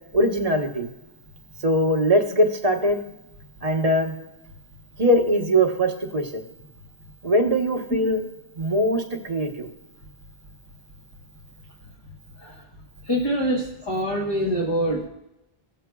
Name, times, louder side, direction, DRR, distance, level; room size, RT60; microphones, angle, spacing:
voice 1, 0.1-0.9 1.6-3.0 3.6-4.1 5.0-6.4 7.2-8.2 8.6-9.7 14.1-14.2, equal, 35° right, 2 dB, 1.0 m, -21 dB
voice 2, 13.1-15.1, equal, 25° left, -3 dB, 1.2 m, -24 dB
17.5 x 7.2 x 2.2 m, 0.90 s
omnidirectional pair, 1.1 m